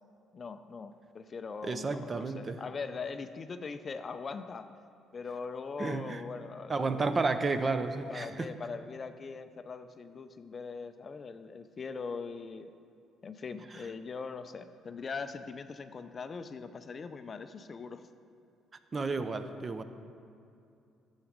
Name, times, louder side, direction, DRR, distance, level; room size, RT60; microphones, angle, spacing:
voice 1, 0.3-4.7 5.1-7.1 8.1-12.7 13.2-18.0, left 5 dB, 35° left, 10 dB, 0.4 m, -41 dB
voice 2, 1.6-2.6 5.8-6.2 6.7-8.5 18.9-19.8, right 3 dB, 25° right, 9 dB, 0.6 m, -31 dB
11.5 x 7.2 x 5.1 m, 2.6 s
cardioid pair, 120°, 0 cm